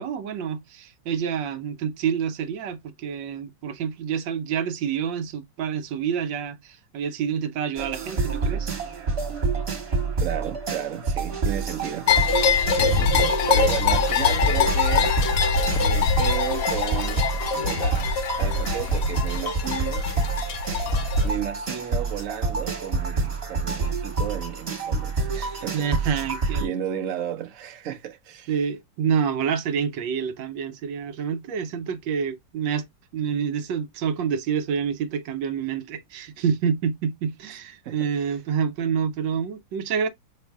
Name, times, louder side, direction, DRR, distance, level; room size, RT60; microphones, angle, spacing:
voice 1, 0.0-8.7 25.7-26.7 28.5-32.9 33.1-40.1, right 7 dB, 75° right, 1.4 m, -27 dB
sound 1, 7.8-26.7, right 3 dB, 35° right, 1.7 m, -28 dB
voice 2, 10.2-15.1 15.8-17.3 17.5-20.1 21.2-26.1 26.6-28.5 37.8-38.3, right 10 dB, 55° right, 0.9 m, -33 dB
sound 2, 12.1-21.3, left 6 dB, 60° left, 0.9 m, -23 dB
6.3 x 2.5 x 3.4 m
omnidirectional pair, 2.1 m